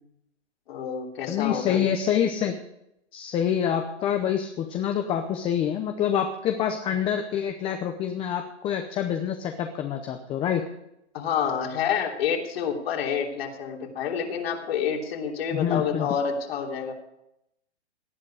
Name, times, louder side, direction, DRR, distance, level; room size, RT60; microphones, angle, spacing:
voice 1, 0.7-1.9 11.1-16.9, left 7 dB, 60° left, 1 dB, 3.3 m, -28 dB
voice 2, 1.3-2.6 3.1-10.7 15.5-16.1, left 9 dB, 15° left, 6 dB, 0.8 m, -26 dB
18.0 x 11.0 x 4.9 m, 0.82 s
hypercardioid pair, 145°, 35 cm